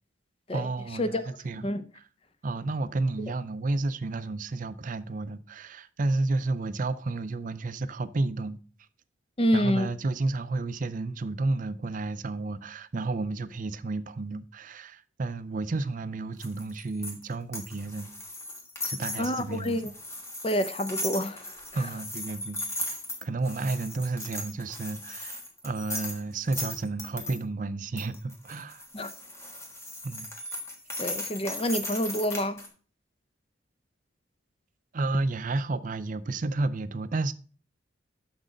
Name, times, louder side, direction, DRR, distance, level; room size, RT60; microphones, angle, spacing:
voice 1, 0.5-1.7 1.9-2.0 2.4-8.6 9.5-18.1 18.9-19.9 21.7-22.6 23.2-28.8 30.0-30.3 34.9-37.3, right 3 dB, 45° right, 0.5 m, -31 dB
voice 2, 9.4-9.9 19.2-19.9 20.4-21.5 28.9-29.1 31.0-32.6, equal, 30° left, 0.6 m, -27 dB
sound 1, 16.4-27.4 28.0-32.7, left 1 dB, 15° left, 1.3 m, -37 dB
6.3 x 6.2 x 5.1 m
head